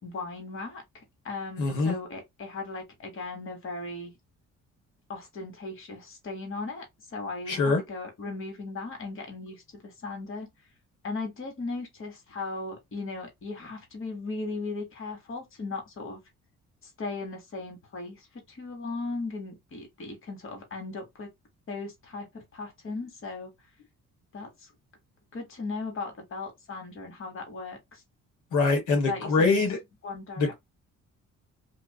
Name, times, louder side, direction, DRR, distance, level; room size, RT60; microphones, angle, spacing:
voice 1, 0.0-4.1 5.1-6.9 7.1-10.5 11.0-16.2 16.8-21.3 21.7-23.5 24.3-24.7 25.3-28.0 29.1-29.5 30.0-30.5, left 3 dB, 45° left, 1.2 m, -37 dB
voice 2, 1.6-2.0 7.5-7.8 28.5-29.8 30.4-30.5, left 3 dB, 80° left, 1.1 m, -24 dB
2.5 x 2.3 x 2.2 m
cardioid pair, 90°, 30 cm